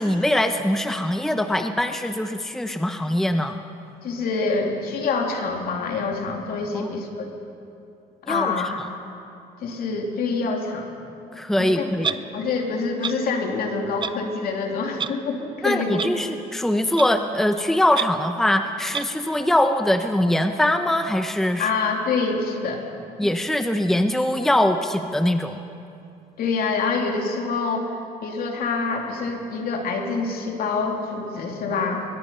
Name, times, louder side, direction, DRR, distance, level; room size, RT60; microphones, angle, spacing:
voice 1, 0.0-3.6 6.7-6.9 8.3-8.5 8.8-8.9 11.3-12.1 15.6-21.7 23.2-25.6, left 1 dB, ahead, 7 dB, 0.8 m, -22 dB
voice 2, 4.0-7.3 8.2-8.8 9.6-10.9 11.6-16.1 21.6-22.8 23.2-23.3 26.4-27.9 28.2-32.0, left 4 dB, 60° left, 1 dB, 3.2 m, -26 dB
Clock, 12.0-12.2 13.0-13.1 14.0-14.1 15.0-15.1 16.0-16.1 17.0-17.1 17.9-18.0 18.9-19.0, right 6 dB, 30° right, 0.7 m, -26 dB
21.5 x 21.0 x 5.7 m, 2.6 s
cardioid pair, 110°, 17 cm